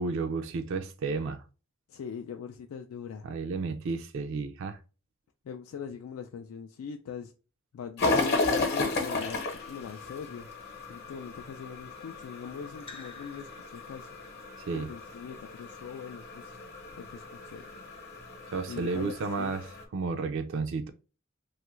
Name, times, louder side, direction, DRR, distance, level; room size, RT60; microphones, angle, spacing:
voice 1, 0.0-1.4 3.2-4.8 14.7-14.9 18.5-19.7 19.9-20.9, right 4 dB, 60° right, 0.3 m, -32 dB
voice 2, 1.9-3.3 5.4-7.3 7.7-10.5 10.9-14.2 14.7-16.5 17.0-17.7 18.7-19.6, left 7 dB, 85° left, 0.3 m, -41 dB
sound 1, 8.0-19.8, left 3 dB, 50° left, 0.8 m, -34 dB
Raindrop / Drip, 9.2-10.4 12.8-14.2, left 3 dB, 25° left, 0.5 m, -50 dB
2.9 x 2.4 x 3.0 m
head